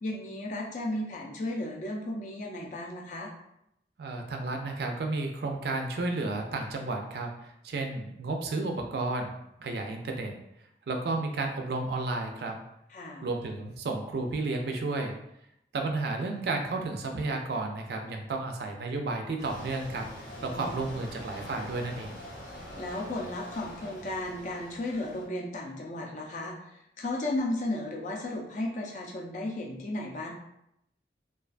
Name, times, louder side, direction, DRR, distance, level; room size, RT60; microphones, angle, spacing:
voice 1, 0.0-3.3 12.9-13.2 20.4-20.7 22.8-30.3, left 1 dB, 45° left, -1 dB, 0.4 m, -34 dB
voice 2, 4.0-9.3 9.6-10.3 10.9-12.6 13.2-15.1 15.7-20.1 20.4-22.1, right 3 dB, 65° right, 3 dB, 0.4 m, -32 dB
sound 1, 19.4-25.3, equal, 75° left, 0.7 m, -44 dB
2.4 x 2.2 x 2.4 m, 0.79 s
head